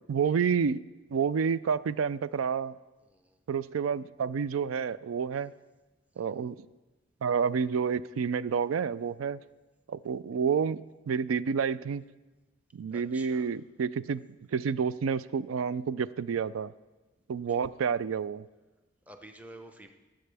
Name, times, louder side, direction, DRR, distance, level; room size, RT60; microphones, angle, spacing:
voice 1, 0.1-0.8 1.1-2.8 3.5-5.5 6.2-6.6 7.2-9.4 9.9-10.8 11.1-12.0 12.7-14.2 14.5-16.7 17.3-18.4, right 6 dB, 90° right, 17 dB, 0.4 m, -29 dB
voice 2, 3.0-3.4 5.3-5.5 6.1-6.5 12.9-13.5 17.5-17.6 19.1-19.9, right 1 dB, 5° right, 6 dB, 0.7 m, -51 dB
19.0 x 7.8 x 3.4 m, 1.2 s
head